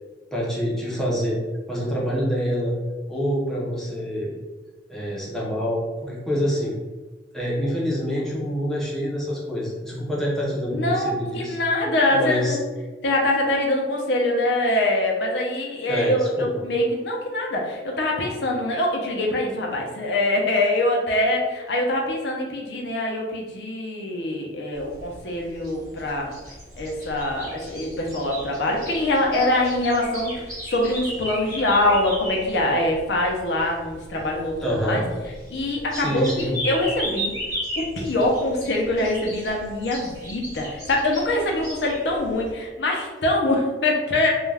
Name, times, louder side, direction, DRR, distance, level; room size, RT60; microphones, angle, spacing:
voice 1, 0.3-1.4 1.7-2.7 3.1-4.3 4.9-6.8 7.3-11.6 12.1-12.6 15.9-16.5 34.6-35.0 35.9-36.6, equal, 5° left, -6 dB, 0.5 m, -26 dB
voice 2, 10.7-12.6 13.0-26.3 26.8-35.0 35.5-37.3 37.8-44.3, left 1 dB, 70° left, 0 dB, 0.5 m, -24 dB
sound 1, 24.7-42.5, equal, 15° right, 0.9 m, -36 dB
2.3 x 2.1 x 3.2 m, 1.3 s
head